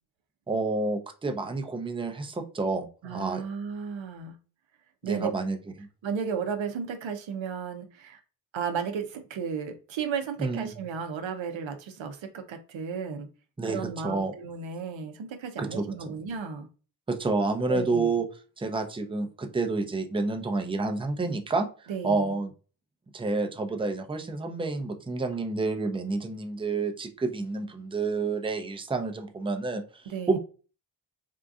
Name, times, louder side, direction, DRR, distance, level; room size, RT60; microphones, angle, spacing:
voice 1, 0.5-3.4 5.0-5.6 10.4-10.7 13.6-14.3 15.6-15.9 17.1-18.3 18.6-22.5 23.1-30.4, right 3 dB, 10° right, 5 dB, 0.5 m, -29 dB
voice 2, 3.0-4.3 5.0-5.3 6.0-8.2 8.5-13.3 13.6-16.7 17.7-18.1 21.9-22.4 30.1-30.4, right 6 dB, 80° right, 6 dB, 0.7 m, -34 dB
3.7 x 2.5 x 2.3 m, 0.36 s
cardioid pair, 50°, 45 cm